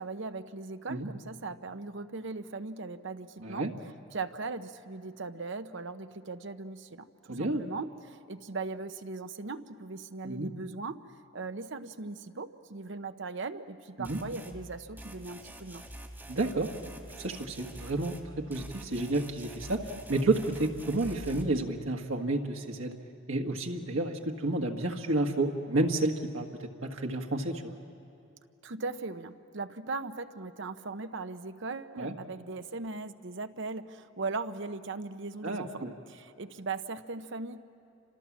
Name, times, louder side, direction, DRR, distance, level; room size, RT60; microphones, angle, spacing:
voice 1, 0.0-3.7 4.1-11.0 11.3-15.8 28.6-37.6, right 3 dB, 65° right, 10 dB, 0.9 m, -39 dB
voice 2, 3.4-3.7 7.3-7.6 10.2-10.5 14.0-14.2 16.3-16.7 17.2-19.8 20.1-23.0 23.3-27.8 32.0-32.1 35.4-35.9, right 2 dB, 90° right, 1 dB, 1.6 m, -30 dB
sound 1, 14.0-14.6 15.0-18.3 18.5-21.4, right 1 dB, 10° right, 1.9 m, -46 dB
30.0 x 26.5 x 7.3 m, 2.6 s
head